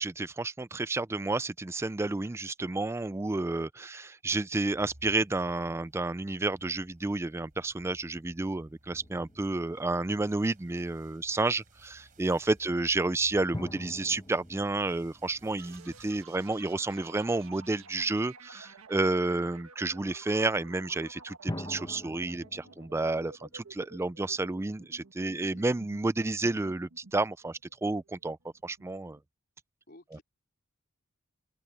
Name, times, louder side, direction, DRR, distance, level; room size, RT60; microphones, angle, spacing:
voice 1, 0.0-28.4 28.6-29.2, right 2 dB, 10° right, 0.3 m, -31 dB
sound 1, 4.7-16.2, right 1 dB, 40° right, 3.7 m, -59 dB
sound 2, 8.9-10.6 13.5-16.2 21.5-24.5, left 1 dB, 20° left, 1.2 m, -44 dB
sound 3, 15.6-29.2, right 4 dB, 75° right, 1.5 m, -52 dB
voice 2, 25.2-25.8 29.9-30.2, left 1 dB, 45° left, 4.0 m, -56 dB
open air
head